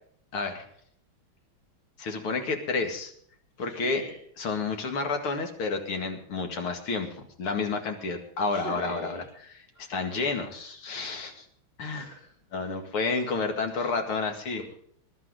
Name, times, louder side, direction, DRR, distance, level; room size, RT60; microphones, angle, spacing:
voice 1, 0.3-0.7 2.0-3.1 3.6-4.0 4.4-7.1 7.4-9.2 9.8-11.5 11.8-12.0 12.5-14.6, left 4 dB, 75° left, 5 dB, 2.9 m, -30 dB
voice 2, 3.7-4.1 8.5-9.3 9.7-9.9 11.9-12.7 13.7-13.9 14.6-14.7, equal, 30° left, 0 dB, 2.1 m, -42 dB
21.5 x 11.5 x 3.8 m, 0.62 s
omnidirectional pair, 2.4 m